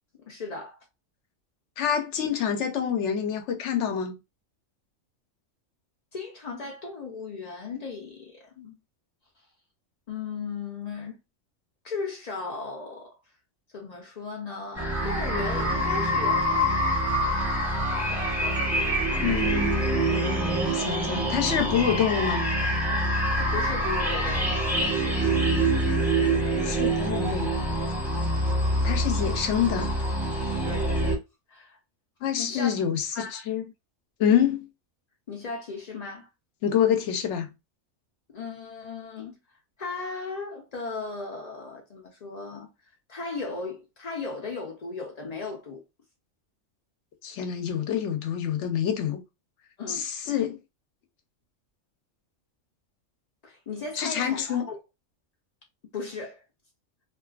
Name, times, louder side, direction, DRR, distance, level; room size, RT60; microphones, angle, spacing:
voice 1, 0.2-0.8 6.1-8.8 10.1-11.2 11.8-13.2 13.7-16.7 23.4-24.6 30.6-30.9 31.5-31.8 32.4-32.7 33.1-33.4 35.3-36.3 38.3-39.4 39.8-42.7 43.1-45.8 49.8-50.1 53.4-54.8 55.9-56.4, left 4 dB, 90° left, 0.3 m, -36 dB
voice 2, 1.8-4.2 19.2-22.4 26.5-27.6 28.8-30.0 32.2-33.6 34.2-34.7 36.6-37.5 47.2-49.2 49.9-50.6 54.0-54.7, left 8 dB, 70° left, 0.8 m, -27 dB
sound 1, 14.8-31.1, right 1 dB, ahead, 0.9 m, -25 dB
2.4 x 2.3 x 2.3 m
omnidirectional pair, 1.4 m